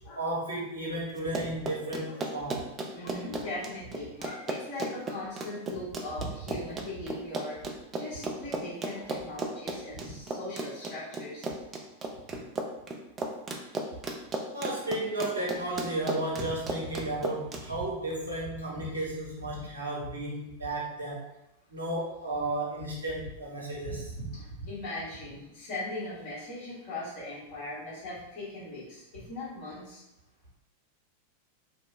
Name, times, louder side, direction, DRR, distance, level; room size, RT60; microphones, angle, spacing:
voice 1, 0.2-2.7 6.2-6.3 14.5-21.3 21.7-24.3 24.6-24.7, right 1 dB, 75° right, -5 dB, 0.8 m, -33 dB
Run, 1.2-17.6, right 2 dB, 25° right, 0.3 m, -35 dB
voice 2, 2.9-7.6 7.9-11.5 18.8-18.9 24.4-30.0, left 2 dB, 40° left, -9 dB, 1.3 m, -39 dB
2.7 x 2.1 x 2.5 m, 0.88 s
figure-of-eight pair, 90°, 0 cm